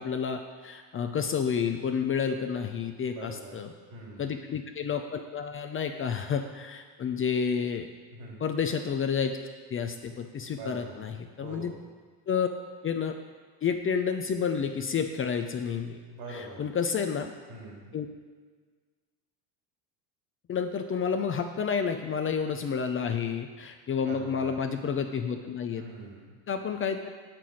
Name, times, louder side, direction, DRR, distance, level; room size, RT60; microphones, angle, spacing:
voice 1, 0.0-3.7 4.2-7.9 8.4-9.4 9.7-11.7 12.3-12.5 12.8-13.1 13.6-16.0 16.3-17.3 17.9-18.1 20.5-25.8 26.5-27.1, left 6 dB, 30° left, 5 dB, 0.5 m, -30 dB
voice 2, 3.1-3.6 3.9-4.3 8.1-8.4 10.4-11.0 11.4-11.8 16.1-16.6 17.5-17.9 24.1-24.6 25.7-26.3, right 3 dB, 75° right, -2 dB, 2.9 m, -43 dB
6.9 x 5.9 x 6.2 m, 1.5 s
cardioid pair, 115°, 47 cm